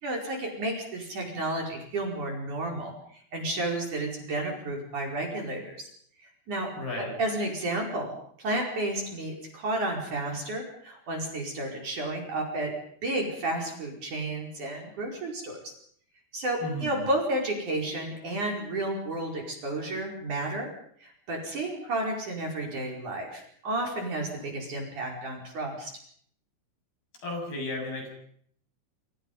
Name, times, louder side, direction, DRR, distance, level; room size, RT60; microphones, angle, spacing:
voice 1, 0.0-5.9 6.5-6.7 7.2-8.1 8.4-12.7 13.0-15.6 16.3-20.7 21.0-25.9, right 1 dB, 40° right, 1 dB, 6.1 m, -32 dB
voice 2, 6.8-7.1 16.6-17.0 27.2-28.1, left 1 dB, 50° left, 2 dB, 9.4 m, -34 dB
28.5 x 27.0 x 5.5 m, 0.64 s
omnidirectional pair, 5.6 m